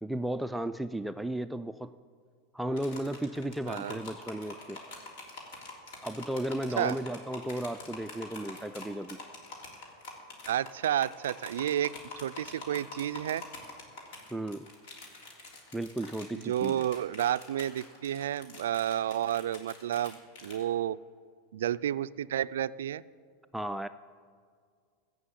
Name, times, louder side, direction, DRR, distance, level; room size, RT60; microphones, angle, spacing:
voice 1, 0.0-1.9 2.5-4.8 6.0-9.2 14.3-14.7 15.7-16.9 23.5-23.9, right 1 dB, 5° right, 10 dB, 0.3 m, -34 dB
sound 1, 2.8-20.6, left 3 dB, 70° left, 3.4 m, -46 dB
voice 2, 3.7-4.0 6.8-7.0 10.5-13.4 16.3-21.0 21.5-23.0, right 11 dB, 85° right, 16 dB, 0.3 m, -31 dB
15.0 x 6.3 x 8.7 m, 2.1 s
supercardioid pair, 120°, 0 cm